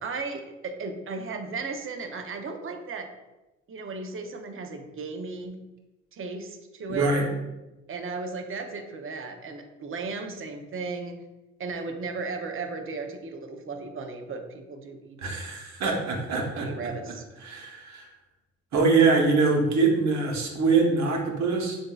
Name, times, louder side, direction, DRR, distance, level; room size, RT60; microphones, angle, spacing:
voice 1, 0.0-3.1 3.7-5.6 6.1-7.1 7.9-11.2 11.6-15.2 16.5-17.2, right 4 dB, 45° right, 5 dB, 0.7 m, -35 dB
voice 2, 6.9-7.3 15.2-16.7 17.4-18.1 18.7-21.8, right 4 dB, 65° right, 0 dB, 1.1 m, -23 dB
7.1 x 2.6 x 2.3 m, 1.0 s
cardioid pair, 90°, 30 cm